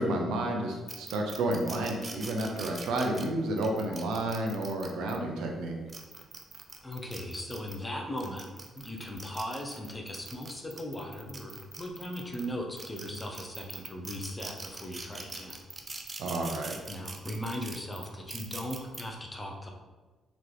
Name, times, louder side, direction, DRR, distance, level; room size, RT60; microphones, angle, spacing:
voice 1, 0.0-5.8 16.2-16.8, right 1 dB, 85° right, 2 dB, 0.7 m, -31 dB
sound 1, 0.9-5.2 5.7-7.8 8.2-12.5 12.8-19.0, right 3 dB, 30° right, 0.5 m, -43 dB
voice 2, 6.8-8.5 8.8-15.6 16.9-19.7, left 1 dB, 20° left, 1 dB, 0.7 m, -38 dB
4.1 x 2.9 x 3.3 m, 1.3 s
cardioid pair, 90°, 0 cm